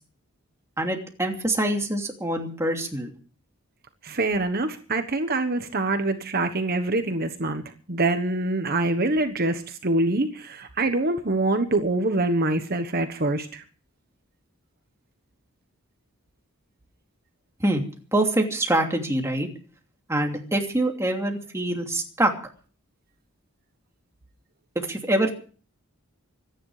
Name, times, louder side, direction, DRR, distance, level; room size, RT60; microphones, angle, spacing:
voice 1, 0.8-3.1 17.6-17.8 18.1-19.5 20.1-22.3 24.9-25.3, right 1 dB, 15° right, 2 dB, 2.8 m, -25 dB
voice 2, 4.0-7.6 7.9-13.6, right 2 dB, 45° right, 8 dB, 1.2 m, -25 dB
25.5 x 10.5 x 4.9 m, 0.42 s
head